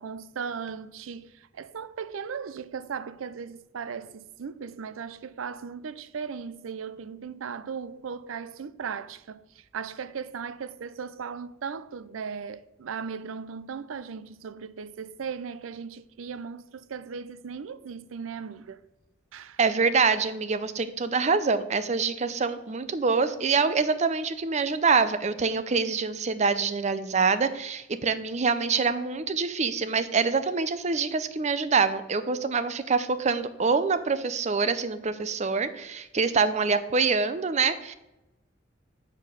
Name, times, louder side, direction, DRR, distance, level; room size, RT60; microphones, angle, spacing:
voice 1, 0.0-18.8 19.3-19.6, right 6 dB, 90° right, 0.5 m, -37 dB
voice 2, 19.6-37.9, right 4 dB, 35° right, 0.5 m, -25 dB
7.3 x 4.4 x 6.2 m
head